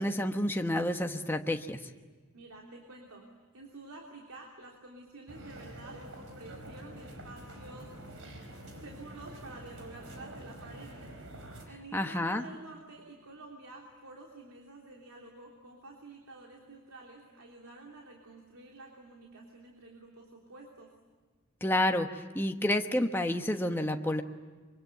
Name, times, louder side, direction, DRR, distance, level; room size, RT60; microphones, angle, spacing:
voice 1, 0.0-1.8 11.9-12.4 21.6-24.2, left 1 dB, 10° left, 4 dB, 1.1 m, -29 dB
voice 2, 2.3-3.2 3.5-7.9 8.7-10.9 11.6-20.9, right 2 dB, 80° right, 0 dB, 3.4 m, -50 dB
sound 1, 5.3-11.7, right 1 dB, 60° right, 4.8 m, -47 dB
25.0 x 24.0 x 9.2 m, 1.4 s
head